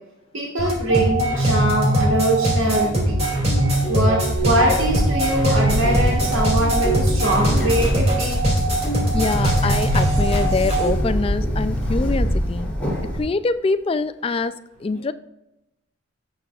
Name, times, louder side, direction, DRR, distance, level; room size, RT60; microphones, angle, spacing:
voice 1, 0.3-3.3 3.9-8.4 9.0-9.2 12.0-12.1, right 1 dB, 85° right, -2 dB, 1.7 m, -23 dB
sound 1, 0.6-10.9, right 1 dB, 30° right, 2.5 m, -21 dB
Bird, 4.4-13.2, equal, 5° left, 3.1 m, -24 dB
voice 2, 9.1-12.7 13.2-14.5 14.8-15.1, left 3 dB, 30° left, 12 dB, 0.3 m, -24 dB
17.0 x 6.9 x 2.4 m, 0.94 s
head